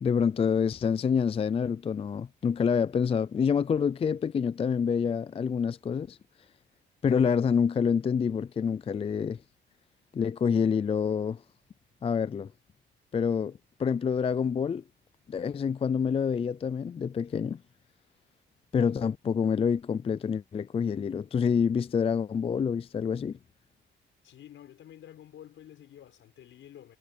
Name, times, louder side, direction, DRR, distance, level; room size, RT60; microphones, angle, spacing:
voice 1, 0.0-6.2 7.0-9.4 10.1-11.4 12.0-12.5 13.1-14.8 15.3-17.6 18.7-23.4, left 6 dB, 30° left, 0.4 m, -27 dB
voice 2, 24.2-27.0, left 11 dB, 75° left, 7.0 m, -50 dB
cardioid pair, 90°, 20 cm